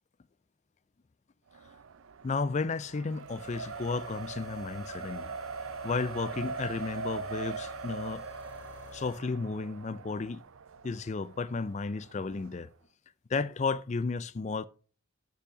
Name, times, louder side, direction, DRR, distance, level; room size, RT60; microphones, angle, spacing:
Race car auto racing, 1.5-12.5, right 5 dB, 70° right, 0.5 m, -42 dB
voice 1, 2.2-5.3 5.8-8.2 8.9-10.4 10.8-12.7 13.3-14.7, left 4 dB, 30° left, 0.4 m, -33 dB
sound 1, 3.2-9.2, left 6 dB, 80° left, 2.7 m, -50 dB
8.4 x 5.6 x 5.0 m
head